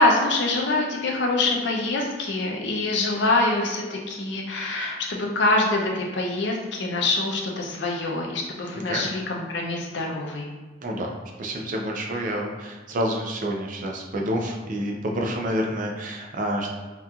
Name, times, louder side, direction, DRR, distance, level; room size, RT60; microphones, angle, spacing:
voice 1, 0.0-10.5, left 2 dB, 65° left, 0 dB, 0.5 m, -25 dB
voice 2, 10.8-16.7, equal, 45° right, 0 dB, 0.4 m, -28 dB
2.8 x 2.4 x 2.3 m, 1.3 s
head